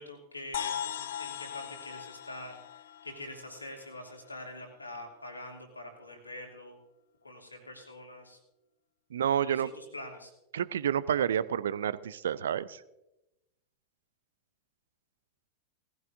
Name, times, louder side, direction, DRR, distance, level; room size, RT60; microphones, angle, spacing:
voice 1, 0.0-6.8 7.2-8.4 9.4-10.3, left 1 dB, 80° left, 1 dB, 2.6 m, -45 dB
sound 1, 0.5-4.3, left 9 dB, 60° left, 0.6 m, -39 dB
voice 2, 9.1-9.7 10.5-12.8, right 9 dB, 65° right, 18 dB, 0.5 m, -29 dB
18.5 x 15.0 x 2.6 m, 0.93 s
figure-of-eight pair, 90°, 0 cm